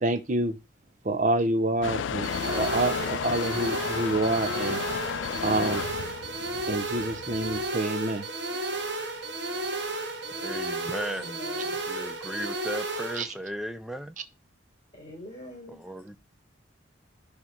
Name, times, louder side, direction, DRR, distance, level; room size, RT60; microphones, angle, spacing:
voice 1, 0.0-0.6 1.0-4.8 5.4-5.9 6.7-8.3 13.1-13.3, right 2 dB, 40° right, 0.7 m, -27 dB
Motor vehicle (road) / Engine starting / Accelerating revving vroom, 1.8-7.7, left 7 dB, 70° left, 0.3 m, -33 dB
sound 1, 2.2-13.2, right 2 dB, 60° right, 1.3 m, -33 dB
voice 2, 10.3-11.4 11.9-14.2 15.8-16.2, equal, ahead, 0.5 m, -36 dB
voice 3, 11.1-11.8 14.9-15.8, left 1 dB, 25° left, 5.1 m, -44 dB
11.0 x 3.6 x 4.5 m
head